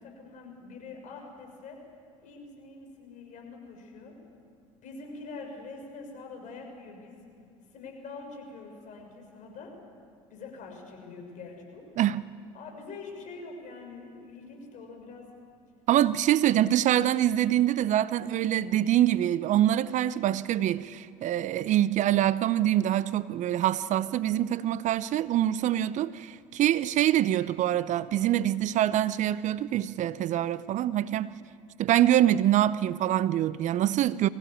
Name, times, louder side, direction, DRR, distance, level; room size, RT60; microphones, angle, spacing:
voice 1, 0.0-1.8 2.2-4.2 4.8-7.2 7.7-9.7 10.3-11.8 12.5-15.3 16.4-16.5, left 4 dB, 50° left, 6.3 m, -44 dB
voice 2, 15.9-31.3 31.8-34.3, right 12 dB, 50° right, 0.6 m, -25 dB
23.0 x 16.0 x 9.9 m
hypercardioid pair, 70°, 16 cm